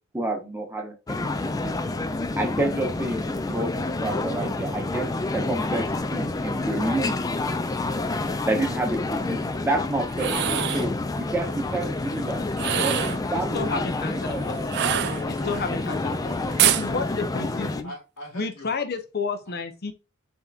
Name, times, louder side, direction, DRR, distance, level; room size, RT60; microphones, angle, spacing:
voice 1, 0.1-1.9 2.4-7.3 8.4-10.4 10.7-12.4 12.8-13.0 13.3-14.6, right 2 dB, 10° right, 0.8 m, -29 dB
sound 1, 1.1-17.8, left 2 dB, 15° left, 0.3 m, -28 dB
voice 2, 3.8-4.4 14.8-18.8 19.5-19.6, left 2 dB, 85° left, 1.8 m, -43 dB
sound 2, 10.1-10.9 12.5-13.3 14.7-15.6 16.6-16.9, right 11 dB, 55° right, 0.4 m, -24 dB
voice 3, 13.3-14.8 15.5-16.0 16.6-17.9 18.3-19.9, left 4 dB, 50° left, 0.7 m, -31 dB
4.3 x 3.7 x 2.4 m
head